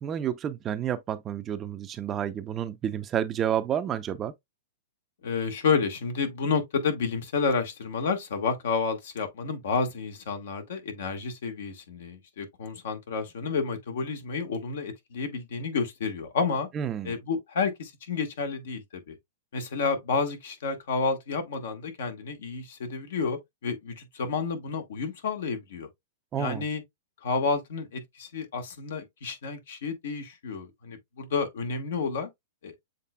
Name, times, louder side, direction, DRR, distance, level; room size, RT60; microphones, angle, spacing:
voice 1, 0.0-4.3 16.8-17.1 26.3-26.6, right 9 dB, 25° right, 0.5 m, -30 dB
voice 2, 5.2-16.7 17.0-19.2 19.5-25.9 26.4-26.8 27.2-32.3 32.6-32.7, left 5 dB, 70° left, 1.5 m, -30 dB
7.4 x 3.2 x 2.2 m
hypercardioid pair, 125°, 0 cm